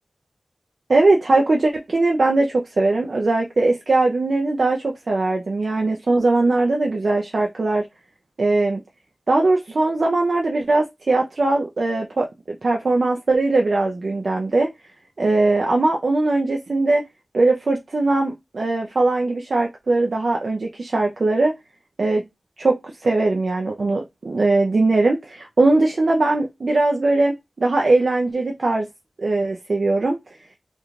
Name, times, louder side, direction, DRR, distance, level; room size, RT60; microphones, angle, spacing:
voice 1, 0.9-7.9 8.4-8.8 9.3-14.7 15.2-17.0 17.3-21.5 22.0-22.3 22.6-28.9 29.2-30.2, right 2 dB, 60° right, 0.4 m, -20 dB
2.4 x 2.2 x 3.0 m
wide cardioid pair, 85°, 0 cm